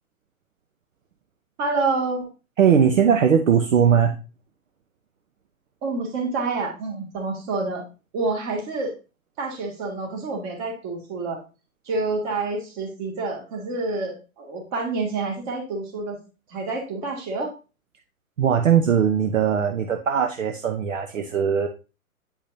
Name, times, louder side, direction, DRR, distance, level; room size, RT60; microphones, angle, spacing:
voice 1, 1.6-2.3 5.8-7.9 8.1-8.9 9.4-11.4 11.9-16.2 16.5-17.5, right 3 dB, 30° right, 0 dB, 2.3 m, -28 dB
voice 2, 2.6-4.2 18.4-21.7, right 7 dB, 60° right, 5 dB, 0.9 m, -19 dB
8.8 x 4.9 x 2.7 m, 0.32 s
figure-of-eight pair, 125°, 43 cm